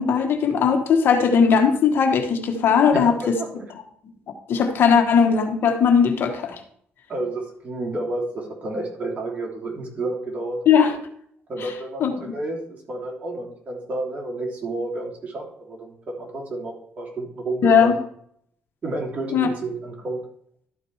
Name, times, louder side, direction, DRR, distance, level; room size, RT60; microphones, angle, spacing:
voice 1, 0.0-3.4 4.5-6.6 10.7-11.0 11.6-11.7 12.0-12.1 17.6-18.0 19.3-19.5, left 6 dB, 60° left, 5 dB, 1.4 m, -18 dB
voice 2, 2.9-3.7 7.1-10.6 11.5-18.0 18.8-20.2, right 2 dB, 35° right, -1 dB, 3.3 m, -30 dB
12.5 x 5.0 x 4.7 m, 0.66 s
cardioid pair, 100°, 4 cm